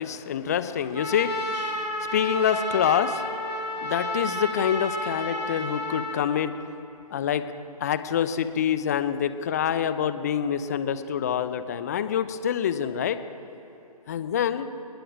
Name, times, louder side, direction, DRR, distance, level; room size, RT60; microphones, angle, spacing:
voice 1, 0.0-3.3 3.7-6.5 7.1-7.5 7.8-13.2 14.1-14.7, left 8 dB, 25° left, 12 dB, 0.9 m, -26 dB
Trumpet, 1.0-6.2, left 1 dB, 85° right, 3.8 m, -31 dB
29.0 x 19.5 x 5.0 m, 3.0 s
figure-of-eight pair, 145°, 20 cm